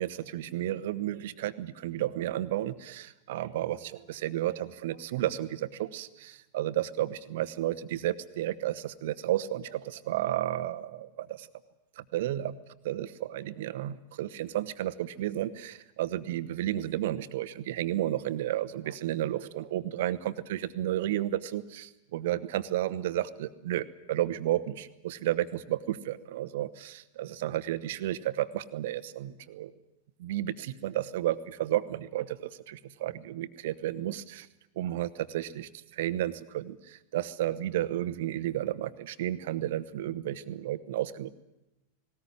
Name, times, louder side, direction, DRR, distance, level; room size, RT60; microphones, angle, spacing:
voice 1, 0.0-11.5 12.0-12.6 12.8-29.7 30.2-34.5 34.8-41.3, right 13 dB, 55° right, 14 dB, 1.0 m, -32 dB
19.0 x 18.5 x 10.0 m, 0.94 s
figure-of-eight pair, 90°, 0 cm